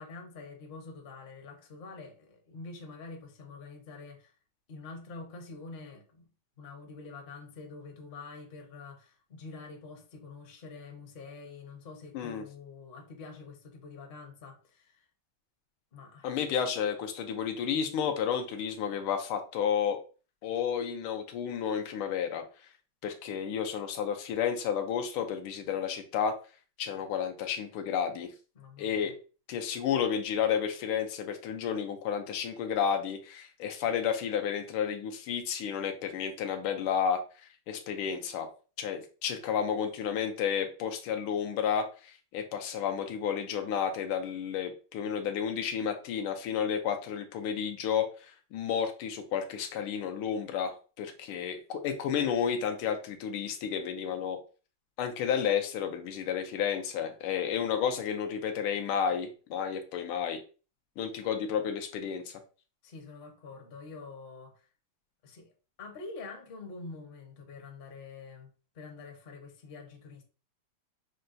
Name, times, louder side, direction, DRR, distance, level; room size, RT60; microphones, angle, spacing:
voice 1, 0.0-4.3 4.7-6.3 6.6-15.0 15.9-16.3 28.5-29.1 62.8-64.6 65.2-65.5 65.8-68.5 68.7-70.2, left 3 dB, 45° left, 0.7 m, -46 dB
voice 2, 16.2-20.0 20.4-22.4 23.0-26.4 26.8-28.3 28.8-29.1 29.5-37.2 37.7-38.5 38.8-54.4 55.0-60.4 61.0-62.4, left 7 dB, 85° left, 1.5 m, -31 dB
6.3 x 2.2 x 2.6 m
omnidirectional pair, 2.3 m